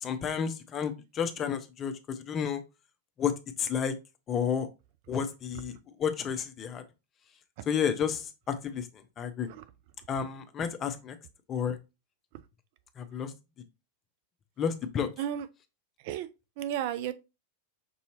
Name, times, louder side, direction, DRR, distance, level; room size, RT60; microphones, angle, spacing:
voice 1, 0.0-2.6 3.2-4.0 4.3-4.7 5.1-6.8 7.7-9.5 10.1-11.2 11.5-11.8 13.0-13.3 14.6-15.1, left 7 dB, 30° left, 0.6 m, -31 dB
voice 2, 16.6-17.1, right 10 dB, 50° right, 0.3 m, -33 dB
5.4 x 2.7 x 2.9 m
figure-of-eight pair, 90°, 0 cm